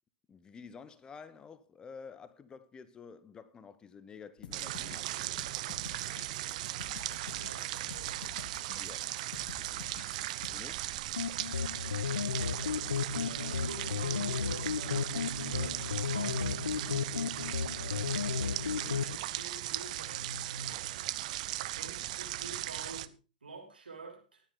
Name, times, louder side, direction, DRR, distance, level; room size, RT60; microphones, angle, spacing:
voice 1, 0.3-5.4 8.8-9.2 9.6-10.1 10.5-10.9, left 6 dB, 15° left, 1.0 m, -51 dB
sound 1, 4.4-10.6, left 8 dB, 65° left, 2.3 m, -49 dB
sound 2, 4.5-23.1, right 15 dB, 50° right, 0.8 m, -38 dB
voice 2, 6.9-8.3 13.0-16.7 17.6-21.1 21.7-23.1 23.4-24.4, right 2 dB, 85° right, 6.4 m, -47 dB
sound 3, 11.2-19.2, left 6 dB, 80° left, 0.9 m, -34 dB
15.5 x 11.0 x 3.9 m
hypercardioid pair, 120°, 5 cm